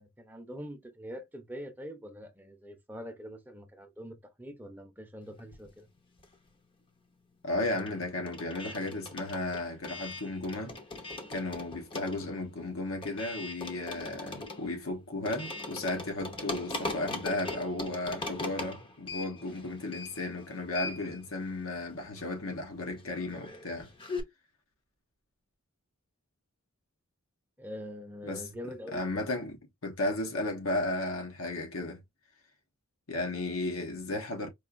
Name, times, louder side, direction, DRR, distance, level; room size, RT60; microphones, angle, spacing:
voice 1, 0.0-5.9 27.6-29.3, equal, 10° right, 0.7 m, -44 dB
sound 1, 5.4-6.6 6.9-24.2, left 2 dB, 25° left, 0.7 m, -41 dB
voice 2, 7.4-10.8 11.3-23.9 28.2-28.4 28.9-32.0 33.1-34.5, left 2 dB, 85° left, 1.1 m, -34 dB
4.5 x 2.5 x 2.5 m
head